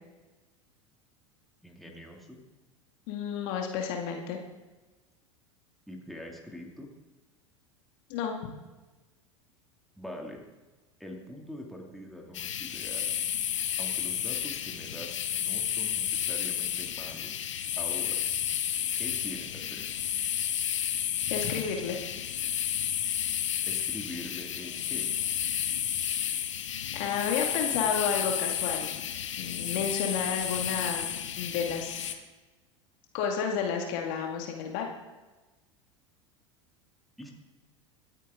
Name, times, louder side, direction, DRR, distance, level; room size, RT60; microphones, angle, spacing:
voice 1, 1.6-2.4 5.9-6.9 10.0-10.4 11.0-13.1 13.8-17.5 17.8-18.2 19.0-19.9 23.6-25.1 37.2-37.3, left 1 dB, ahead, 0 dB, 2.6 m, -44 dB
voice 2, 3.1-4.4 8.1-8.5 21.3-22.0 26.1-26.5 26.9-28.9 29.4-31.1 31.4-32.2 33.1-34.9, left 6 dB, 55° left, 2 dB, 2.1 m, -31 dB
sound 1, 12.3-32.1, left 10 dB, 70° left, 1.0 m, -32 dB
25.0 x 9.0 x 3.8 m, 1.2 s
figure-of-eight pair, 80°, 16 cm